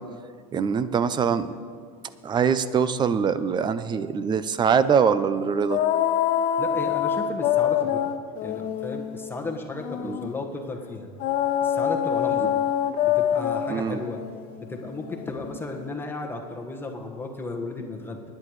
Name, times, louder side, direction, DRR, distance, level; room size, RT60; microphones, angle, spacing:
voice 1, 0.5-1.5 2.2-5.8 10.0-10.2 12.4-12.5 13.7-14.0, right 6 dB, 25° right, 14 dB, 0.6 m, -23 dB
sound 1, 5.7-10.3 11.2-15.9, left 10 dB, 45° left, 0.7 m, -26 dB
voice 2, 6.6-8.1 8.4-11.1 11.6-12.5 13.0-14.2 14.6-18.2, left 3 dB, 10° left, 1 dB, 1.5 m, -34 dB
24.0 x 10.5 x 3.2 m, 2.1 s
supercardioid pair, 125°, 19 cm